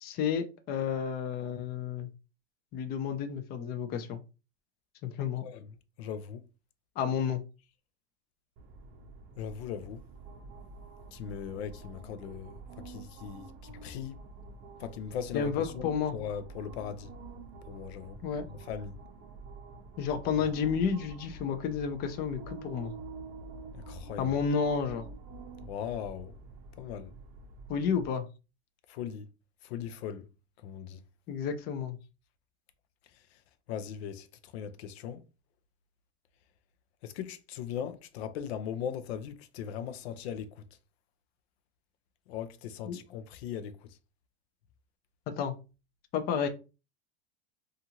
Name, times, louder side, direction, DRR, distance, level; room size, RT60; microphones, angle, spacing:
voice 1, 0.0-2.1 2.7-4.2 5.0-5.4 7.0-7.4 15.3-16.2 18.2-18.4 20.0-22.9 24.2-25.0 27.7-28.3 31.3-32.0 42.9-43.0 45.3-45.5 46.1-46.5, left 7 dB, 30° left, 0.4 m, -31 dB
voice 2, 6.0-6.4 9.4-10.0 11.1-14.2 14.8-17.1 17.7-18.2 18.5-18.9 23.7-24.3 25.6-26.3 26.8-27.1 28.9-29.3 29.6-30.2 30.6-31.0 33.7-34.3 34.5-35.2 37.0-40.6 42.3-43.8, left 8 dB, 80° left, 0.5 m, -39 dB
sound 1, 8.6-28.1, right 3 dB, 35° right, 0.6 m, -48 dB
2.6 x 2.4 x 2.9 m
supercardioid pair, 135°, 31 cm